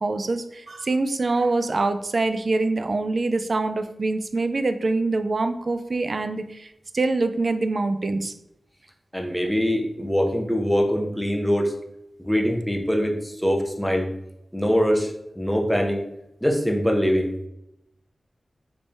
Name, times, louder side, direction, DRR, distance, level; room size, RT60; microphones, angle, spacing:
voice 1, 0.0-8.3, right 3 dB, 55° right, 9 dB, 0.3 m, -25 dB
voice 2, 9.1-11.8 12.2-14.1 14.5-15.1 15.4-16.0 16.4-17.3, equal, ahead, 1 dB, 0.6 m, -23 dB
3.5 x 3.2 x 2.6 m, 0.81 s
wide cardioid pair, 65°, 0 cm